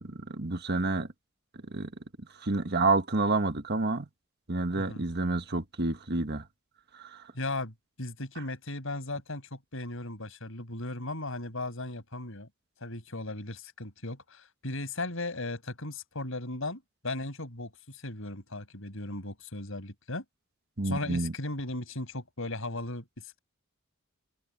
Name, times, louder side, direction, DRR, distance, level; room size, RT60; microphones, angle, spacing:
voice 1, 0.0-1.1 1.7-1.9 2.4-4.1 4.5-6.4 6.9-7.2 20.8-21.3, right 3 dB, 50° right, 1.6 m, -29 dB
voice 2, 7.3-12.5 12.8-20.2 20.8-23.1, left 2 dB, 70° left, 6.6 m, -37 dB
open air
head